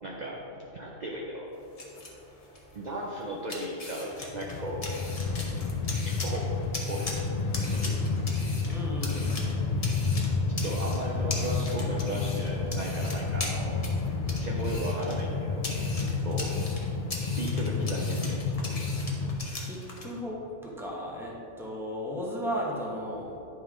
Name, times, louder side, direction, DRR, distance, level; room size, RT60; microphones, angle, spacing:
voice 1, 0.0-1.5 2.7-4.9 6.0-7.2 7.7-8.0 10.6-13.8 14.3-15.7 16.2-16.5 17.4-18.8, right 1 dB, 45° right, -2 dB, 0.7 m, -36 dB
sound 1, 1.5-20.1, left 2 dB, 30° left, 1.0 m, -41 dB
Train, 4.2-19.4, left 4 dB, 50° left, 0.5 m, -30 dB
voice 2, 8.7-9.6 19.6-23.4, equal, ahead, -4 dB, 1.0 m, -35 dB
9.6 x 5.3 x 3.7 m, 2.9 s
omnidirectional pair, 1.3 m